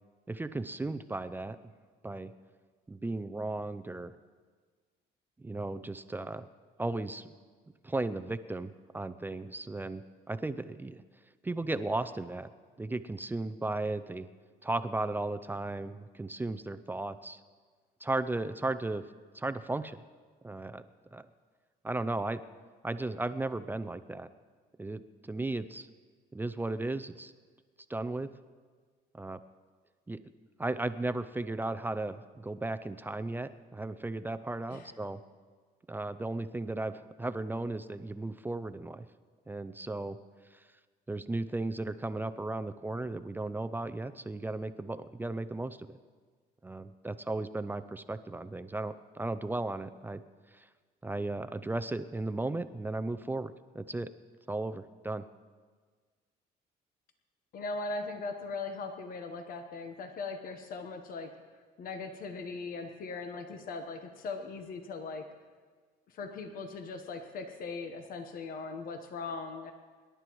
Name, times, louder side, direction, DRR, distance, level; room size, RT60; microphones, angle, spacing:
voice 1, 0.3-1.6 2.0-2.3 2.9-4.1 5.4-6.5 6.8-7.3 7.8-11.0 11.4-12.5 12.8-14.3 14.6-17.4 18.0-19.0 19.3-20.0 20.4-20.8 21.1-21.3 21.8-22.4 22.8-24.3 24.8-25.9 26.3-27.3 27.9-28.3 29.1-29.4 30.1-30.2 30.6-35.2 35.9-39.1 39.5-40.2 40.5-40.6 41.1-46.0 46.6-50.2 50.5-50.7 51.0-54.1 54.5-55.2, right 2 dB, 10° right, 12 dB, 0.4 m, -35 dB
voice 2, 57.5-61.3 61.8-65.2 66.1-69.7, left 3 dB, 55° left, 6 dB, 1.1 m, -39 dB
25.5 x 11.5 x 3.1 m, 1.5 s
cardioid pair, 110°, 17 cm